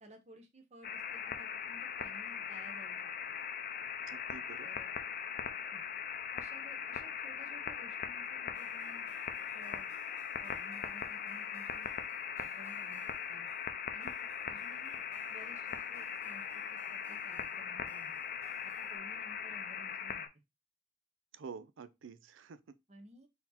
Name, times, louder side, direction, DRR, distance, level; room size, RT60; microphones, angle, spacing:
voice 1, 0.0-3.1 4.6-4.9 5.7-5.8 6.3-9.1 9.5-9.9 10.4-11.9 12.4-13.5 13.9-18.2 18.6-20.3 22.9-23.3, right 1 dB, 35° right, 0.8 m, -56 dB
sound 1, 0.8-20.3, left 7 dB, 45° left, 0.5 m, -40 dB
voice 2, 4.1-4.7 14.0-14.1 21.3-22.8, right 5 dB, 85° right, 0.4 m, -49 dB
sound 2, 8.5-19.0, left 1 dB, 10° right, 1.7 m, -64 dB
4.2 x 2.8 x 4.1 m
head